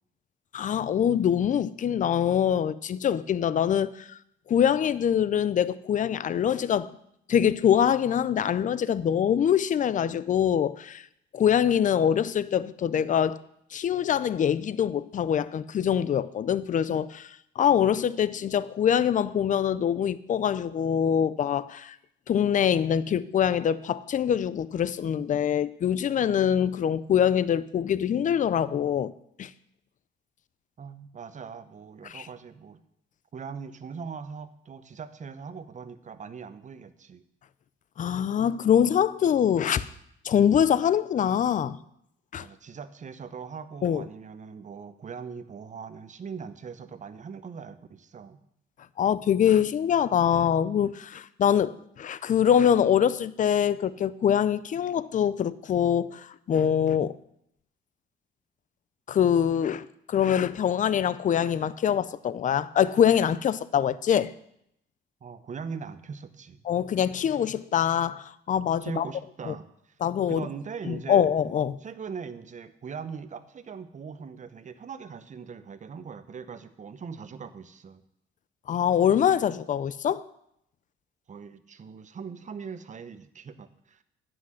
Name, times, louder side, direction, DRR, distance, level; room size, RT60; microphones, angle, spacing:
voice 1, 0.5-4.2 4.5-6.9 7.3-11.0 11.3-13.4 13.7-22.0 22.3-29.1 29.4-29.5 32.0-32.3 38.0-39.9 40.2-41.8 42.3-42.5 43.8-44.1 49.0-57.2 59.1-64.3 66.6-69.1 69.5-69.6 70.0-70.5 70.9-71.8 78.7-80.2, left 9 dB, 40° left, 0.4 m, -24 dB
voice 2, 30.8-32.8 33.3-37.2 42.4-48.4 65.2-66.6 68.8-69.9 70.2-71.3 71.8-78.0 81.3-84.0, right 6 dB, 40° right, 0.8 m, -40 dB
9.7 x 5.9 x 6.3 m
cardioid pair, 90°, 20 cm